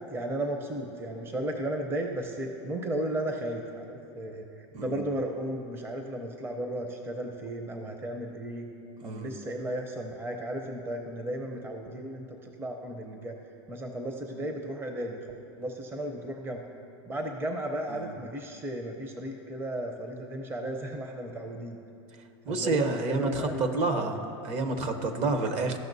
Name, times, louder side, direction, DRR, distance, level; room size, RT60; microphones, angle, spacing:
voice 1, 0.1-8.7 9.0-13.3 13.7-15.2 15.6-16.7 17.1-21.8 22.5-24.1, right 1 dB, 15° right, 3 dB, 0.6 m, -35 dB
voice 2, 9.0-9.3 17.9-18.1 22.4-24.2 24.4-25.8, right 3 dB, 50° right, 7 dB, 0.9 m, -29 dB
14.5 x 5.8 x 2.7 m, 2.8 s
supercardioid pair, 120°, 15 cm